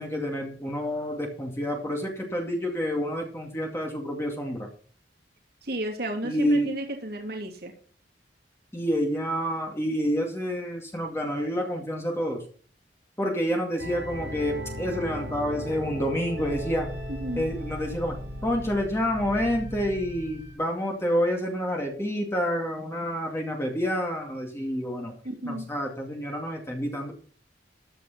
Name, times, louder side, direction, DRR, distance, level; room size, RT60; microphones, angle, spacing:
voice 1, 0.0-4.7 6.2-6.8 8.7-12.4 13.2-16.9 17.4-18.2 18.4-25.1 25.4-27.1, equal, 15° left, 0 dB, 2.3 m, -28 dB
voice 2, 5.6-7.7 17.1-17.5 25.2-25.7, right 1 dB, 60° right, 1 dB, 2.9 m, -33 dB
sound 1, 13.8-20.5, equal, 80° right, 4.3 m, -37 dB
13.5 x 8.6 x 4.3 m, 0.43 s
head